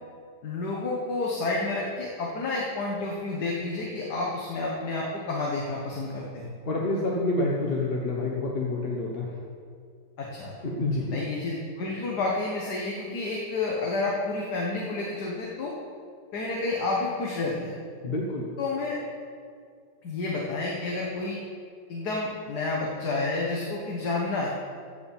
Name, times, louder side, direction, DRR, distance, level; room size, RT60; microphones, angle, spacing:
voice 1, 0.4-6.5 10.2-10.5 11.1-15.7 16.3-17.7 18.6-19.0 20.0-21.4 21.9-24.5, left 3 dB, 65° left, -3 dB, 1.8 m, -30 dB
voice 2, 6.6-9.4 10.6-11.2 18.0-18.5, left 2 dB, 40° left, -2 dB, 1.1 m, -28 dB
15.0 x 5.0 x 7.2 m, 2.2 s
omnidirectional pair, 1.9 m